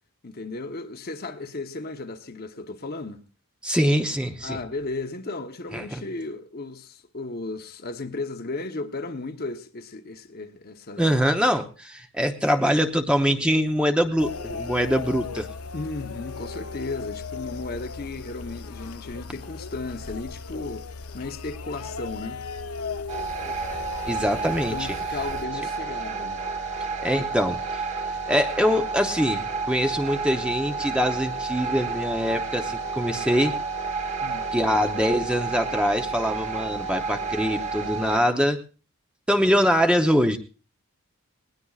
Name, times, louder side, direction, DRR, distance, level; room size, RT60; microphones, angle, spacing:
voice 1, 0.2-3.2 4.4-11.2 15.7-20.9 21.1-22.4 24.7-26.4 34.2-34.5, left 3 dB, 45° left, 0.9 m, -35 dB
voice 2, 3.6-4.6 5.7-6.0 11.0-15.5 24.1-24.9 27.0-33.6 34.5-38.6 39.3-40.4, equal, 5° right, 0.7 m, -23 dB
sound 1, 14.2-25.4, left 4 dB, 80° left, 0.7 m, -37 dB
sound 2, 23.1-38.2, right 4 dB, 30° right, 1.3 m, -30 dB
19.5 x 19.0 x 2.4 m
head